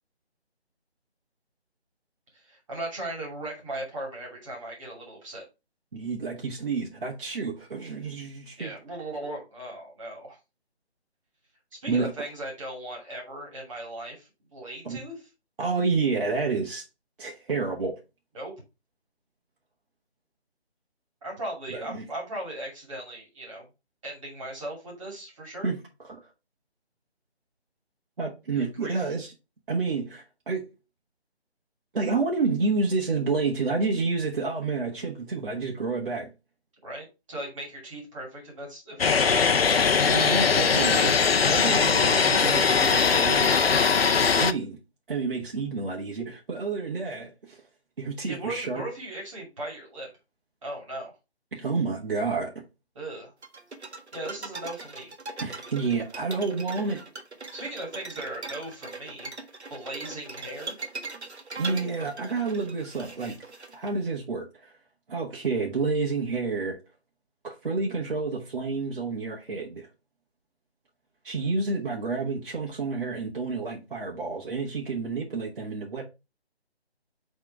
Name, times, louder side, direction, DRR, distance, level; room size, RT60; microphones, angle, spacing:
voice 1, 2.3-5.4 8.6-10.4 11.8-15.2 18.3-18.5 21.2-23.6 24.0-25.7 28.5-29.1 36.8-39.8 41.4-41.8 48.3-50.1 50.6-51.1 52.9-53.3 54.1-55.1 57.5-60.8, right 1 dB, 30° right, 2.6 m, -38 dB
voice 2, 5.9-8.7 11.9-12.1 14.8-15.0 15.6-16.8 17.2-18.0 21.7-22.0 25.6-26.2 28.2-29.3 29.7-30.7 31.9-36.3 40.1-41.2 41.5-43.6 44.4-44.8 45.1-47.6 48.0-48.8 51.5-52.5 55.4-57.0 61.6-63.4 63.7-64.7 65.1-66.8 67.4-69.9 71.2-76.0, right 4 dB, 55° right, 1.5 m, -29 dB
sound 1, 39.0-44.5, left 5 dB, 65° left, 0.6 m, -21 dB
sound 2, 53.4-63.9, right 3 dB, 85° right, 1.3 m, -40 dB
5.8 x 3.6 x 4.6 m
figure-of-eight pair, 165°, 33 cm